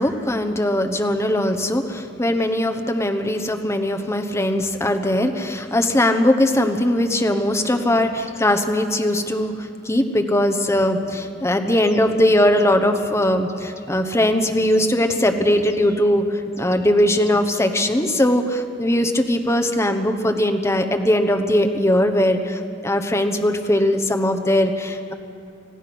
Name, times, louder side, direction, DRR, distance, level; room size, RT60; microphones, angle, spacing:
voice 1, 0.0-25.1, left 1 dB, 15° left, 5 dB, 1.1 m, -20 dB
26.5 x 15.5 x 6.2 m, 2.5 s
head